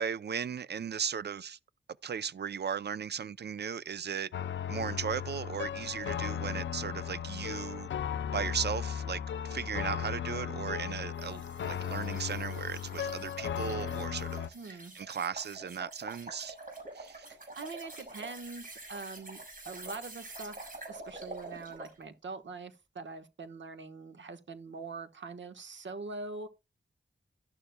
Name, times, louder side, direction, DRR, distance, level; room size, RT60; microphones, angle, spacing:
voice 1, 0.0-1.6 2.0-4.3 4.7-7.9 8.3-16.6 16.9-17.3, right 7 dB, 65° right, 0.5 m, -36 dB
sound 1, 4.3-14.5, left 8 dB, 90° left, 0.5 m, -36 dB
sound 2, 11.2-22.0, right 2 dB, 50° right, 6.1 m, -47 dB
voice 2, 14.5-14.9 17.3-26.5, right 3 dB, 85° right, 1.2 m, -43 dB
12.0 x 11.5 x 2.2 m
wide cardioid pair, 75°, 19 cm